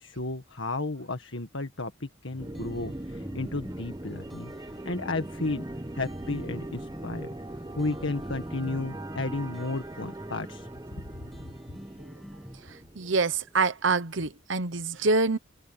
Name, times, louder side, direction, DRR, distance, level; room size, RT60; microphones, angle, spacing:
voice 1, 0.0-4.5 4.9-5.6 5.9-7.3 7.8-10.7, left 2 dB, 65° left, 1.7 m, -33 dB
sound 1, 2.3-12.6, equal, ahead, 5.6 m, -48 dB
Wind magical Aeolus soaring, 2.4-13.8, right 1 dB, 20° right, 0.8 m, -40 dB
voice 2, 13.0-15.4, right 3 dB, 65° right, 1.0 m, -25 dB
head